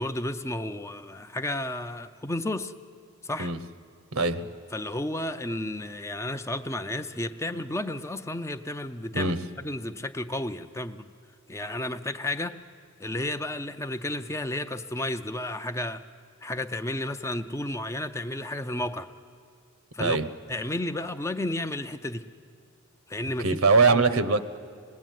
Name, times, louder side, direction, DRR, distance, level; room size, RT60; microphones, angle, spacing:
voice 1, 0.0-2.7 3.2-3.5 4.7-9.3 9.6-11.1 11.5-12.6 13.0-16.0 16.4-19.1 19.9-20.2 20.5-22.3 23.1-23.6 23.9-24.1, left 1 dB, 15° left, 8 dB, 0.5 m, -32 dB
voice 2, 4.1-4.5 9.1-9.4 20.0-20.3 23.4-24.4, right 4 dB, 70° right, 13 dB, 1.0 m, -22 dB
26.0 x 20.0 x 9.2 m, 2.3 s
head